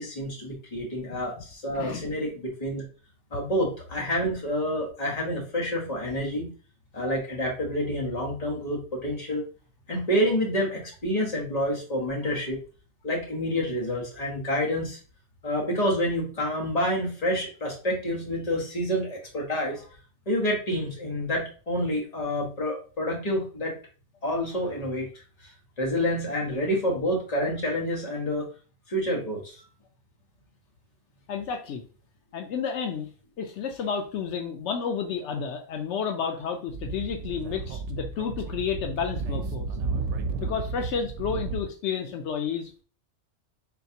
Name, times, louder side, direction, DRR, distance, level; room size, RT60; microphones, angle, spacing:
voice 1, 0.0-2.8 3.3-6.5 6.9-9.4 9.9-12.6 13.0-15.0 15.4-19.9 20.3-23.7 24.2-25.1 25.4-25.5 25.8-28.5 28.9-29.6, equal, 35° left, -2 dB, 1.2 m, -28 dB
voice 2, 1.7-2.1 31.3-31.8 32.3-33.1 33.4-39.7 40.4-42.8, left 6 dB, 80° left, 4 dB, 0.9 m, -31 dB
Speech / Wind, 36.7-41.6, right 4 dB, 80° right, 0.9 m, -32 dB
4.4 x 3.2 x 2.7 m, 0.38 s
omnidirectional pair, 1.2 m